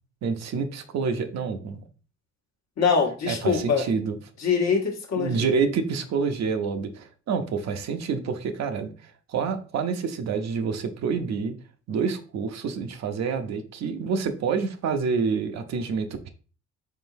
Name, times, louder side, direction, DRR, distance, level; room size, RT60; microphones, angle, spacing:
voice 1, 0.2-1.8 3.3-4.2 5.2-11.6 11.9-16.3, right 5 dB, 60° right, 7 dB, 0.6 m, -28 dB
voice 2, 2.8-3.8 4.4-5.5, left 5 dB, 60° left, 2 dB, 1.1 m, -23 dB
3.8 x 3.7 x 2.6 m, 0.37 s
cardioid pair, 90°, 30 cm